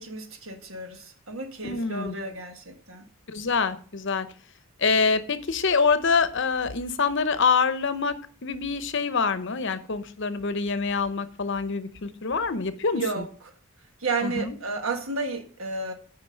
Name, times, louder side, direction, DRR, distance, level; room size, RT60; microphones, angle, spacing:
voice 1, 0.0-3.0 12.9-13.3 14.0-15.9, right 3 dB, 70° right, 1.6 m, -32 dB
voice 2, 1.6-2.1 3.3-4.3 4.8-13.2 14.2-14.6, left 5 dB, 55° left, 0.8 m, -25 dB
8.9 x 5.2 x 6.3 m
head